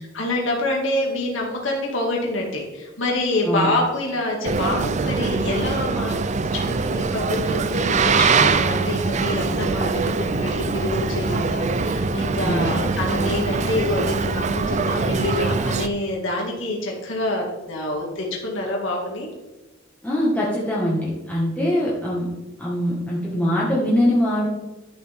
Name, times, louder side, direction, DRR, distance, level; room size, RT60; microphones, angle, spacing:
voice 1, 0.0-6.2 6.5-19.3, left 2 dB, 75° left, -1 dB, 2.2 m, -26 dB
Boat Water vehicle, 4.4-15.9, right 4 dB, 35° right, 0.5 m, -23 dB
voice 2, 20.0-22.3 22.6-24.5, equal, 10° left, -7 dB, 1.7 m, -22 dB
12.0 x 7.1 x 3.6 m, 1.1 s
head